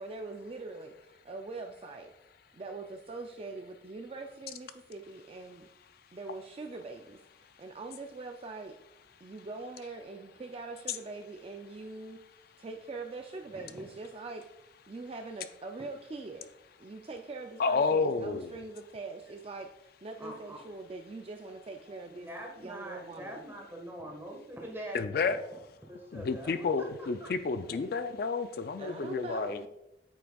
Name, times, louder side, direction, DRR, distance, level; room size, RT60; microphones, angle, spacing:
voice 1, 0.0-2.1 2.5-5.7 6.1-7.2 7.6-8.8 9.2-12.2 12.6-14.4 14.9-16.5 16.8-22.3 22.6-23.4 28.8-29.7, right 3 dB, 30° right, 4 dB, 0.3 m, -42 dB
voice 2, 17.6-18.5 24.9-25.4 26.1-29.6, left 4 dB, 55° left, 10 dB, 0.3 m, -30 dB
voice 3, 20.2-20.6 22.1-25.6 25.9-27.3 27.7-27.8, right 1 dB, 15° right, 0 dB, 1.3 m, -44 dB
8.5 x 6.0 x 2.3 m, 0.88 s
head